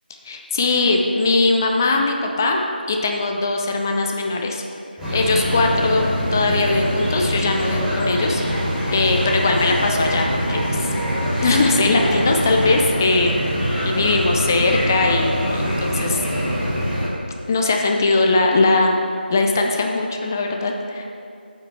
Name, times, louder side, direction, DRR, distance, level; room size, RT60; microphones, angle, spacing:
voice 1, 0.2-2.6 2.9-4.6 5.1-8.4 8.9-10.9 11.4-13.3 13.8-16.2 17.5-19.0 19.3-21.0, left 3 dB, 20° left, 2 dB, 0.4 m, -20 dB
sound 1, 5.0-17.1, equal, 5° right, 1.5 m, -23 dB
8.8 x 5.7 x 5.6 m, 2.5 s
figure-of-eight pair, 165°, 6 cm